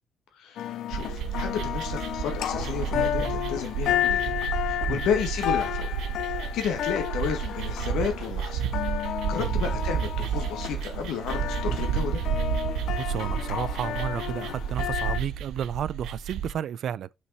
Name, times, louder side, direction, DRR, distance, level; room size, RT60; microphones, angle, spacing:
voice 1, 0.3-4.3 4.6-5.9 6.3-8.6 9.0-12.2, left 7 dB, 90° left, 1.4 m, -32 dB
sound 1, 0.6-15.2, left 11 dB, 65° left, 0.3 m, -32 dB
sound 2, 0.9-16.5, right 8 dB, 80° right, 0.7 m, -31 dB
voice 2, 13.0-17.1, right 9 dB, 55° right, 0.3 m, -32 dB
5.7 x 4.8 x 4.0 m
cardioid pair, 155°, 0 cm